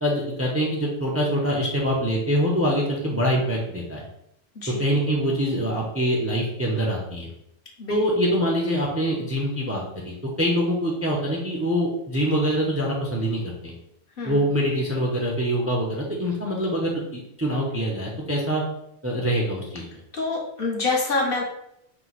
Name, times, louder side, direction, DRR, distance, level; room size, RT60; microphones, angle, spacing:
voice 1, 0.0-4.0 4.7-7.3 7.9-13.7 14.2-18.6 19.0-20.0, equal, 15° right, -2 dB, 0.5 m, -24 dB
voice 2, 14.2-14.5 20.1-21.4, left 3 dB, 55° left, -1 dB, 1.0 m, -26 dB
4.5 x 2.2 x 4.1 m, 0.77 s
omnidirectional pair, 1.2 m